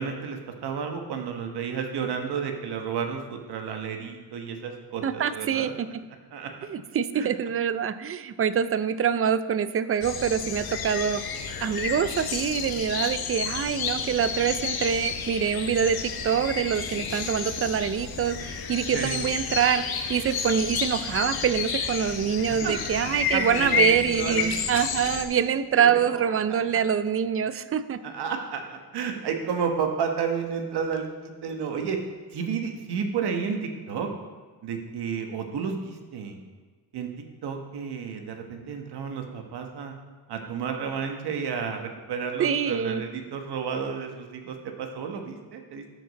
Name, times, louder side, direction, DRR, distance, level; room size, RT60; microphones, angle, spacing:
voice 1, 0.0-5.7 6.3-6.5 7.1-7.3 18.9-19.2 22.6-23.0 23.3-24.5 25.7-26.6 28.0-32.0 32.3-34.1 34.6-36.4 36.9-37.1 37.4-39.9 40.3-45.8, right 6 dB, 80° right, 4 dB, 1.3 m, -31 dB
voice 2, 5.0-5.7 6.7-28.0 42.4-43.0, right 8 dB, 35° right, 13 dB, 0.5 m, -25 dB
sound 1, 10.0-25.3, left 6 dB, 65° left, 1.0 m, -31 dB
13.0 x 5.1 x 4.1 m, 1.4 s
cardioid pair, 100°, 39 cm